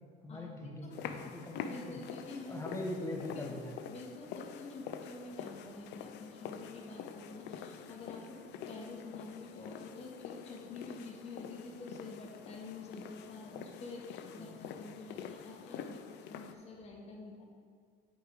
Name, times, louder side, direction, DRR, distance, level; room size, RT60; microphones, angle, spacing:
voice 1, 0.2-2.0 2.5-3.8 14.3-14.6, left 1 dB, 15° left, 1 dB, 1.2 m, -41 dB
sound 1, 0.9-16.5, left 8 dB, 70° left, 0.6 m, -46 dB
voice 2, 1.7-2.6 3.4-3.6 3.9-8.4 8.7-16.0 16.3-17.4, left 3 dB, 35° left, -2 dB, 1.8 m, -48 dB
8.0 x 4.9 x 5.0 m, 2.1 s
cardioid pair, 105°, 18 cm